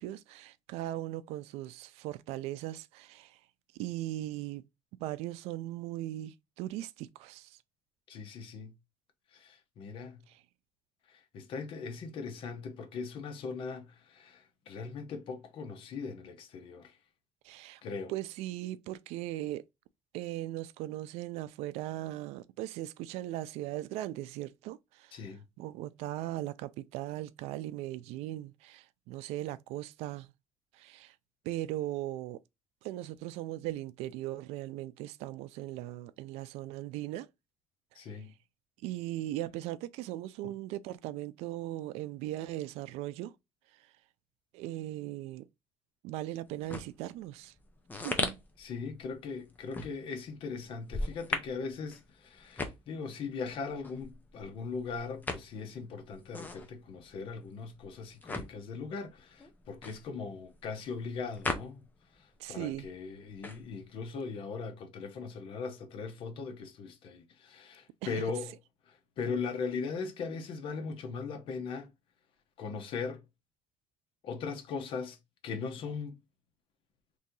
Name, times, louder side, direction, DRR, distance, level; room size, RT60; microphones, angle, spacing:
voice 1, 0.0-3.4 3.7-4.6 5.0-7.6 10.3-10.4 17.4-17.8 18.1-19.6 20.1-25.1 25.6-30.3 30.7-31.1 31.4-32.4 32.8-37.3 38.8-43.3 44.5-45.5 46.0-47.5 48.0-48.4 62.4-62.9 68.0-68.2, right 15 dB, 80° right, 0.4 m, -38 dB
voice 2, 8.1-8.7 9.3-10.2 11.3-16.9 17.8-18.1 25.1-25.4 37.9-38.3 48.6-61.8 62.5-68.5 69.2-71.9 72.6-73.2 74.2-75.2 75.4-76.2, left 5 dB, 55° left, 0.9 m, -39 dB
sound 1, 46.4-62.2 62.5-64.1, left 2 dB, 15° left, 0.7 m, -39 dB
3.1 x 2.7 x 3.8 m
cardioid pair, 130°, 11 cm